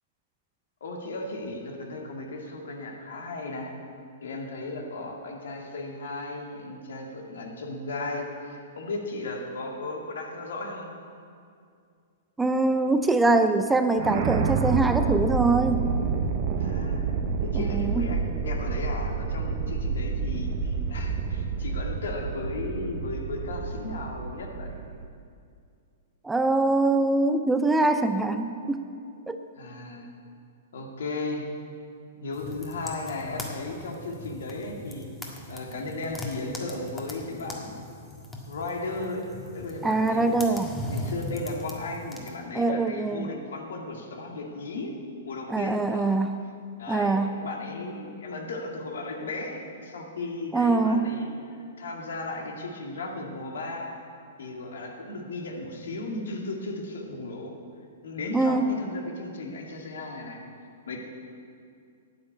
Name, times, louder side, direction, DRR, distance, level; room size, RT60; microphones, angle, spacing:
voice 1, 0.8-3.7 4.2-10.9 16.6-24.7 29.6-30.1 30.7-31.5 32.1-35.1 35.5-37.8 38.5-39.3 39.5-40.3 40.7-44.9 45.2-46.1 46.8-51.3 51.8-53.9 54.4-57.5 58.0-60.4 60.9-61.0, left 2 dB, 70° left, 0 dB, 2.1 m, -35 dB
voice 2, 12.4-15.9 17.5-18.1 26.2-28.9 29.3-29.4 39.8-40.8 42.5-43.3 45.5-46.3 46.9-47.3 50.5-51.1 58.3-58.8, right 3 dB, 10° right, 8 dB, 0.6 m, -23 dB
sound 1, 14.0-25.0, right 5 dB, 45° right, 1.0 m, -29 dB
sound 2, 32.3-42.3, left 2 dB, 15° left, 1.7 m, -39 dB
9.3 x 8.8 x 8.0 m, 2.3 s
figure-of-eight pair, 110°, 0 cm